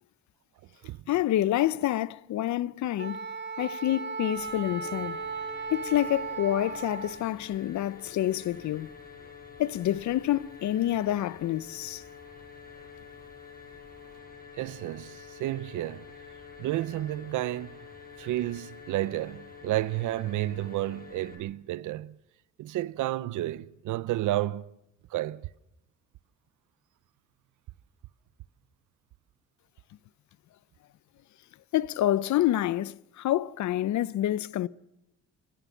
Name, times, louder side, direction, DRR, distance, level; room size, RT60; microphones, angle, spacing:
voice 1, 1.1-3.2 3.6-5.2 5.7-8.9 9.6-12.0 31.7-34.7, left 13 dB, 70° left, 0.7 m, -27 dB
Wind instrument woodwind instrument, 3.0-7.3, right 5 dB, 35° right, 2.4 m, -36 dB
sound 1, 4.4-21.4, left 6 dB, 30° left, 6.8 m, -48 dB
voice 2, 14.5-16.1 16.6-17.8 18.2-22.2 22.6-24.7 25.1-25.4, right 15 dB, 80° right, 0.7 m, -31 dB
26.0 x 15.5 x 7.1 m
cardioid pair, 90°, 30 cm